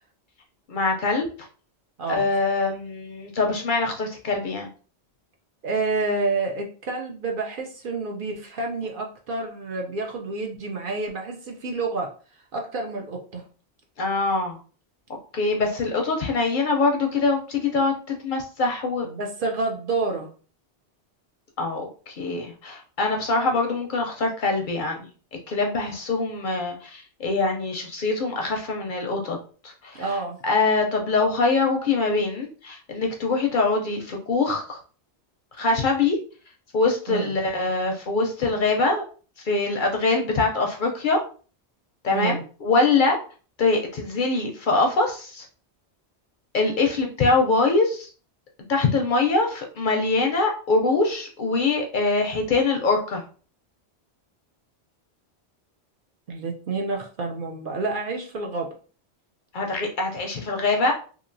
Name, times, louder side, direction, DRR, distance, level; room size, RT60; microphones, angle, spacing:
voice 1, 0.7-1.3 2.1-4.7 14.0-14.6 15.3-19.1 21.6-25.0 25.5-29.4 29.8-30.0 30.4-34.8 35.6-36.2 36.7-39.0 39.5-41.2 42.0-43.2 43.6-45.4 46.5-48.1 48.7-53.2 59.5-60.9, left 3 dB, 60° left, 2 dB, 0.6 m, -23 dB
voice 2, 5.6-12.1 12.5-13.4 19.0-20.3 29.9-30.4 37.1-37.3 42.1-42.4 56.3-58.7, right 3 dB, 60° right, 1 dB, 0.7 m, -29 dB
2.9 x 2.4 x 2.5 m, 0.39 s
omnidirectional pair, 1.1 m